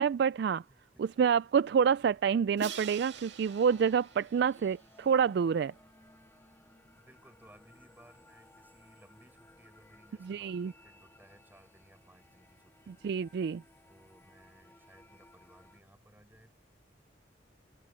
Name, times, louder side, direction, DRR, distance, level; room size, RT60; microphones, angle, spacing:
voice 1, 0.0-0.6 1.0-5.7 10.2-10.7 13.0-13.6, right 7 dB, 65° right, 0.3 m, -27 dB
voice 2, 0.7-1.1 6.9-13.4 13.8-16.5, right 1 dB, 10° right, 7.2 m, -61 dB
Crash cymbal, 2.6-5.5, right 6 dB, 80° right, 2.0 m, -46 dB
sound 1, 2.8-15.8, left 1 dB, 15° left, 2.9 m, -61 dB
head